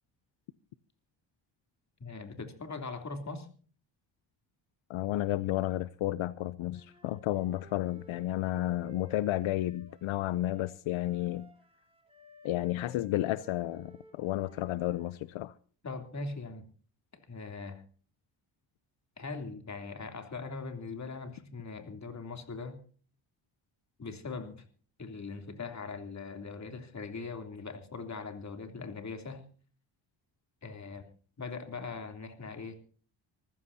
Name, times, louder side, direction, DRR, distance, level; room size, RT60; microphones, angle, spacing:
voice 1, 2.0-3.5 15.8-16.7 17.3-17.8 19.2-22.8 24.0-24.7 25.0-29.5 30.6-31.1 31.4-32.8, left 4 dB, 35° left, 3.2 m, -41 dB
voice 2, 4.9-11.5 12.4-15.5, left 15 dB, 85° left, 0.7 m, -32 dB
Wind instrument woodwind instrument, 6.7-15.2, equal, 10° right, 5.4 m, -56 dB
25.5 x 15.0 x 2.8 m
cardioid pair, 95°, 47 cm